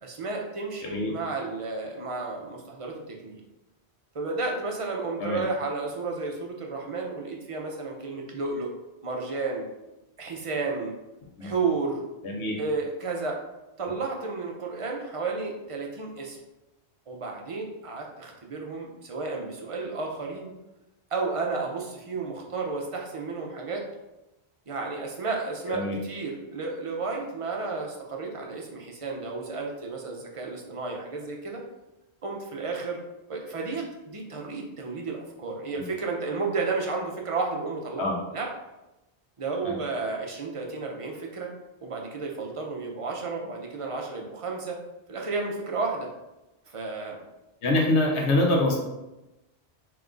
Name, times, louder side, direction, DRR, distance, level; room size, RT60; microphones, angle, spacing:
voice 1, 0.0-3.4 4.1-8.7 9.0-9.7 10.2-10.9 11.4-12.0 12.6-13.4 13.8-16.4 17.1-20.5 21.1-23.8 24.7-31.6 32.2-33.0 33.3-38.5 39.4-41.5 41.8-44.8 45.1-46.1 46.7-47.2, right 3 dB, 35° right, 0 dB, 0.6 m, -32 dB
voice 2, 12.2-12.5 25.7-26.0 35.8-35.9 38.0-38.1 39.6-39.8 47.6-48.8, left 1 dB, 90° left, 0 dB, 1.1 m, -25 dB
3.5 x 2.9 x 3.8 m, 0.97 s
omnidirectional pair, 1.1 m